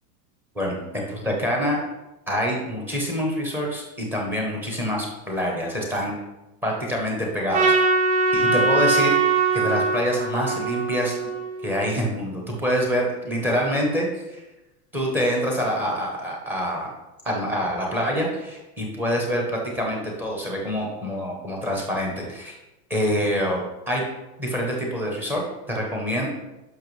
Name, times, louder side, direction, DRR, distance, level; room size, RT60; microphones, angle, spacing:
voice 1, 0.5-1.8 2.3-6.2 6.6-7.7 8.3-9.2 9.5-11.3 11.6-14.4 14.9-16.9 17.2-22.6 22.9-24.0 24.4-26.3, equal, 5° right, -1 dB, 0.7 m, -26 dB
Trumpet, 7.5-11.9, right 4 dB, 45° right, 1.2 m, -22 dB
10.5 x 6.3 x 3.1 m, 0.98 s
supercardioid pair, 175°, 46 cm